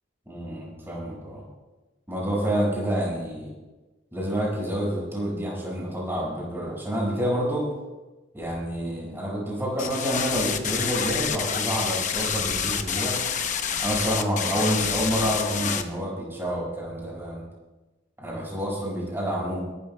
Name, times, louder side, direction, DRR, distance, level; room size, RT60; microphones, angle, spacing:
voice 1, 0.3-1.4 2.1-3.5 4.1-7.7 8.3-13.2 13.8-17.4 18.2-19.6, equal, 10° right, -4 dB, 5.8 m, -28 dB
sound 1, 9.8-15.8, left 7 dB, 40° left, 0.9 m, -28 dB
28.5 x 12.5 x 2.3 m, 1.1 s
head